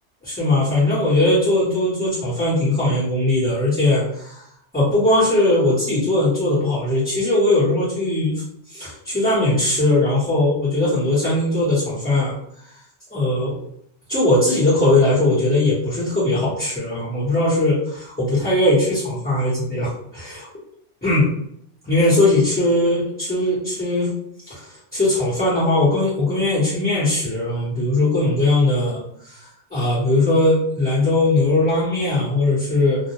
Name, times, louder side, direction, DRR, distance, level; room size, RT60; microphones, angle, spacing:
voice 1, 0.2-4.4 4.7-8.4 8.7-12.3 13.1-13.6 14.1-20.5 21.0-21.3 21.8-24.1 24.5-29.0 29.2-29.4 29.7-33.0, left 2 dB, 10° left, -12 dB, 0.8 m, -19 dB
2.3 x 2.1 x 2.8 m, 0.71 s
omnidirectional pair, 1.2 m